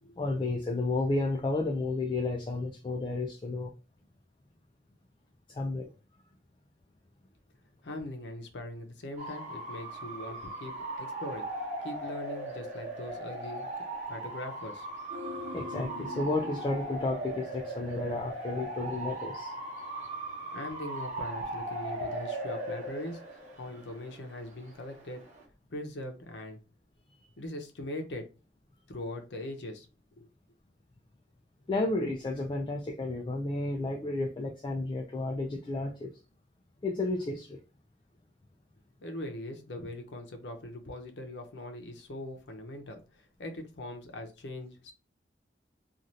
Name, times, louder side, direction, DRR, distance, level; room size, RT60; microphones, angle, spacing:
voice 1, 0.2-3.7 5.5-5.9 15.5-19.5 31.7-36.1 36.8-37.6, left 2 dB, 25° left, 0.3 m, -32 dB
voice 2, 7.8-13.7 14.1-14.9 20.5-25.3 25.7-26.6 27.4-28.3 28.9-29.9 30.2-30.3 39.0-44.9, left 1 dB, 75° left, 0.7 m, -41 dB
Bark / Motor vehicle (road) / Siren, 9.2-25.4, right 1 dB, 45° right, 0.9 m, -39 dB
sound 1, 15.1-18.4 18.7-18.8, left 2 dB, 80° right, 0.4 m, -44 dB
2.6 x 2.5 x 3.0 m
head